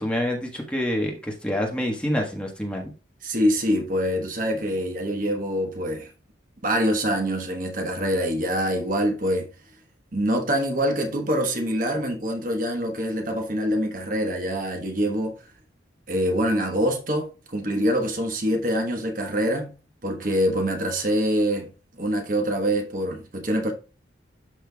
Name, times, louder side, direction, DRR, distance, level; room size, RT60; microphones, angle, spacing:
voice 1, 0.0-2.9, left 1 dB, 5° left, 1.3 m, -27 dB
voice 2, 3.2-6.1 6.6-9.5 10.1-15.3 16.1-19.7 20.0-21.7 22.0-23.7, equal, 45° right, 1.1 m, -25 dB
12.0 x 4.4 x 2.3 m
head